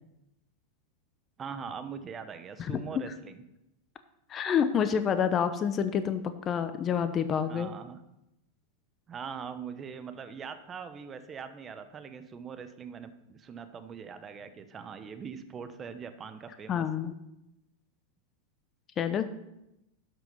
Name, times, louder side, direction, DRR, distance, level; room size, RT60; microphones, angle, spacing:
voice 1, 1.4-3.4 7.5-8.0 9.1-16.8 19.1-19.2, right 6 dB, 30° right, 10 dB, 1.1 m, -42 dB
voice 2, 4.3-7.7 16.7-17.1 19.0-19.2, left 7 dB, 35° left, 10 dB, 0.8 m, -28 dB
12.0 x 6.2 x 5.6 m, 0.87 s
hypercardioid pair, 105°, 0 cm